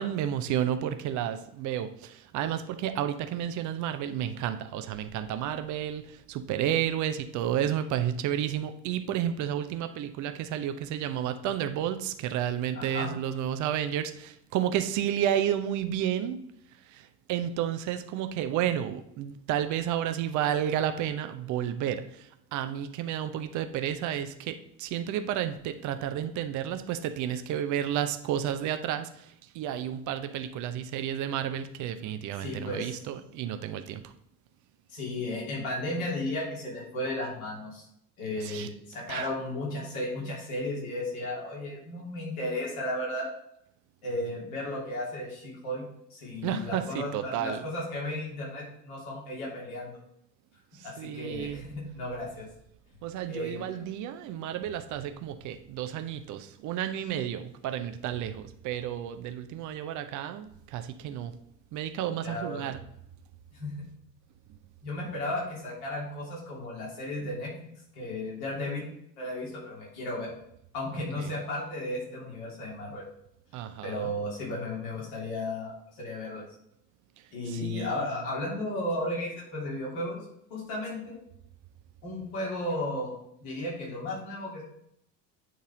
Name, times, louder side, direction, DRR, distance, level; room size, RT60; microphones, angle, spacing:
voice 1, 0.0-16.4 16.9-34.0 38.4-38.7 39.1-39.2 46.4-47.6 50.8-51.7 53.0-61.3 61.7-62.8 71.2-71.3 73.5-74.1 77.5-78.0, right 10 dB, 35° right, 9 dB, 0.7 m, -31 dB
voice 2, 12.7-13.1 32.4-33.0 34.9-37.8 38.2-43.3 44.0-45.8 46.1-50.0 50.8-52.5 53.3-53.8 62.2-62.7 63.5-63.9 64.8-67.5 67.9-70.3 70.7-73.0 73.8-76.4 77.3-80.2 80.5-81.2 82.0-83.1 83.4-84.6, left 1 dB, 60° left, -4 dB, 3.1 m, -34 dB
9.2 x 4.1 x 3.7 m, 0.73 s
figure-of-eight pair, 65°, 50 cm